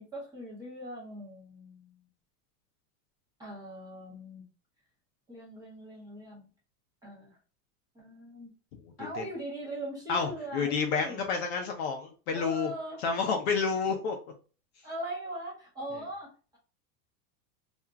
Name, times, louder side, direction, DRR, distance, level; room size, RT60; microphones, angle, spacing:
voice 1, 0.0-2.0 3.4-4.4 5.3-6.5 7.0-7.4 7.9-8.5 9.0-11.2 12.3-13.0 14.8-16.6, right 1 dB, 10° right, -5 dB, 0.6 m, -40 dB
voice 2, 10.1-12.7 13.0-14.2, left 5 dB, 45° left, 3 dB, 0.5 m, -30 dB
2.8 x 2.4 x 2.2 m, 0.37 s
supercardioid pair, 150°, 48 cm